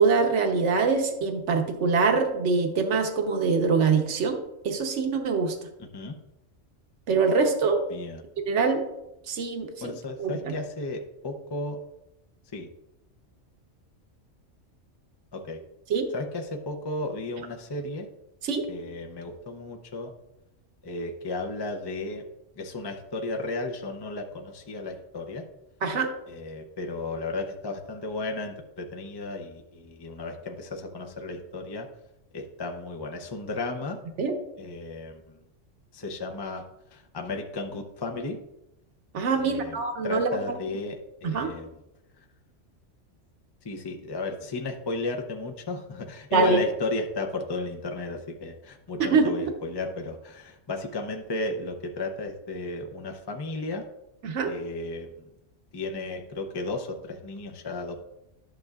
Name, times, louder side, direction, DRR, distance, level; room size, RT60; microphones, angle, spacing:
voice 1, 0.0-4.4 4.6-5.6 7.1-7.8 8.4-8.9 9.3-9.9 10.2-10.5 15.9-16.1 18.4-18.7 25.8-26.1 34.2-34.3 39.1-40.3 41.2-41.5 46.3-46.6 49.1-49.5 54.2-54.5, right 4 dB, 70° right, 4 dB, 1.2 m, -24 dB
voice 2, 5.8-6.2 7.9-8.2 9.8-11.8 12.5-12.7 15.3-15.6 16.1-18.1 18.7-20.1 20.8-22.2 22.6-25.4 26.3-31.9 32.3-34.0 34.6-35.4 35.9-36.7 36.9-38.4 39.3-39.8 40.0-41.7 42.2-42.3 43.6-53.8 54.5-55.1 55.7-58.0, left 2 dB, 30° left, 3 dB, 0.5 m, -34 dB
11.5 x 6.4 x 2.4 m, 0.89 s
omnidirectional pair, 1.3 m